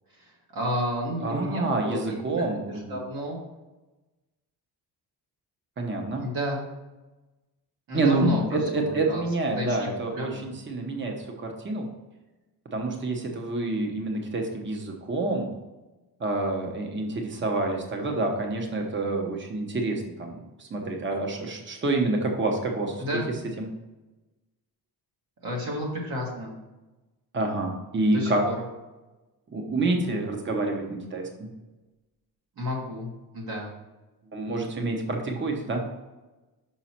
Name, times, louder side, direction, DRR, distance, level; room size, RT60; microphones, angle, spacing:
voice 1, 0.1-2.5 2.9-3.4 6.2-6.6 7.9-10.5 23.0-23.3 25.4-26.5 28.1-28.6 32.6-33.1 33.3-33.7, equal, 60° right, -2 dB, 2.0 m, -31 dB
voice 2, 1.2-3.0 5.8-6.2 7.9-11.9 12.7-15.5 16.2-23.0 23.6-23.7 27.3-28.4 29.5-31.5 34.3-35.8, right 2 dB, 30° right, 2 dB, 1.0 m, -28 dB
6.1 x 5.8 x 4.3 m, 1.1 s
wide cardioid pair, 170°, 40 cm